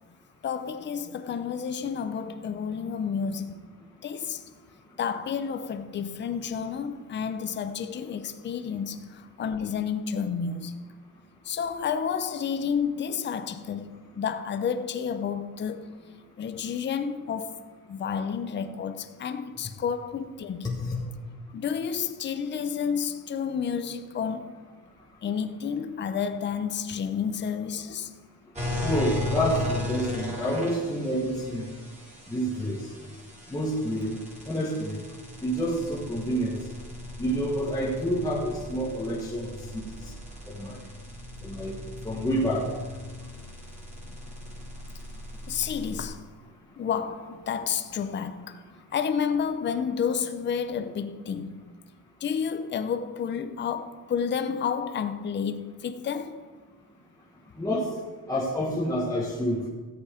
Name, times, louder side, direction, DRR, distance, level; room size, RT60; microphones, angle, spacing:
voice 1, 0.4-3.6 4.0-4.4 5.0-10.8 11.5-15.9 16.4-20.8 21.5-24.5 25.2-28.1 45.5-46.2 46.8-48.6 48.9-51.6 52.2-56.4, left 7 dB, 25° left, 0.6 m, -30 dB
voice 2, 20.6-21.0 28.8-31.7 32.3-32.8 33.5-35.0 35.4-36.6 37.2-39.9 40.5-40.8 41.4-41.8 42.0-42.7 57.6-57.9 58.3-59.7, equal, 10° left, 1.3 m, -28 dB
sound 1, 28.5-46.1, left 2 dB, 15° right, 2.9 m, -37 dB
13.5 x 8.1 x 5.0 m
cardioid pair, 150°, 42 cm